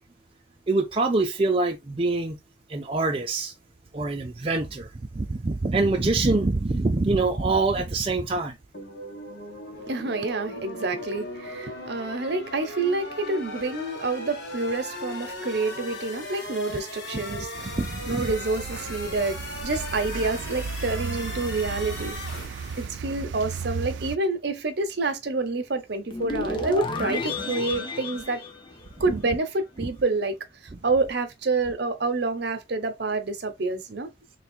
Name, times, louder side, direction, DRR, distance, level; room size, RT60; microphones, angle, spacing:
voice 1, 0.7-2.4 2.7-3.5 3.9-8.5 17.3-17.5 17.8-18.3 29.8-29.9 30.7-30.8, right 3 dB, 30° right, 0.5 m, -25 dB
sound 1, 8.7-22.9, left 2 dB, 60° left, 1.7 m, -38 dB
voice 2, 9.7-17.8 18.1-22.2 22.8-28.4 29.0-30.4 30.8-34.1, right 3 dB, 60° right, 0.8 m, -28 dB
sound 2, 17.5-24.2, right 5 dB, 80° right, 0.4 m, -35 dB
sound 3, 26.1-29.4, left 3 dB, 25° left, 0.7 m, -32 dB
3.4 x 2.3 x 4.4 m
head